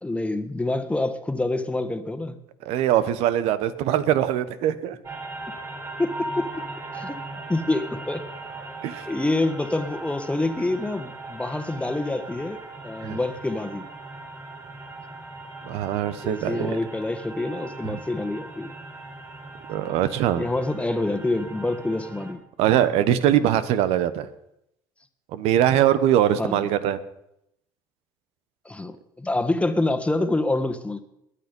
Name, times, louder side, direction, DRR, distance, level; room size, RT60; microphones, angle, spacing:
voice 1, 0.0-2.4 6.0-6.6 6.9-7.2 7.5-8.3 9.0-13.9 16.2-18.7 20.4-22.4 26.4-26.6 28.6-31.0, left 2 dB, 10° left, 9 dB, 1.6 m, -27 dB
voice 2, 2.6-5.0 8.8-9.1 13.0-13.2 15.6-16.8 17.8-18.0 19.7-20.5 22.6-24.3 25.3-27.0, right 11 dB, 70° right, 14 dB, 1.2 m, -22 dB
sound 1, 5.0-22.3, right 2 dB, 30° right, 5.4 m, -39 dB
21.5 x 8.6 x 5.4 m, 0.80 s
supercardioid pair, 75°, 11 cm